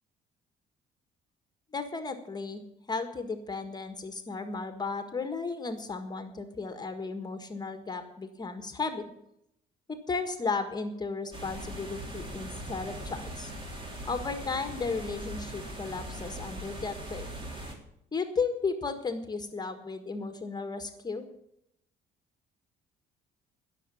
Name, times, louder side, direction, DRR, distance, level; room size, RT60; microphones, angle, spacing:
voice 1, 1.7-2.6 2.9-9.0 10.1-13.5 14.0-17.3 18.1-21.3, left 4 dB, 25° left, 8 dB, 1.7 m, -34 dB
sound 1, 11.3-17.8, right 1 dB, 30° right, 3.8 m, -40 dB
16.5 x 6.7 x 8.4 m, 0.78 s
cardioid pair, 110°, 17 cm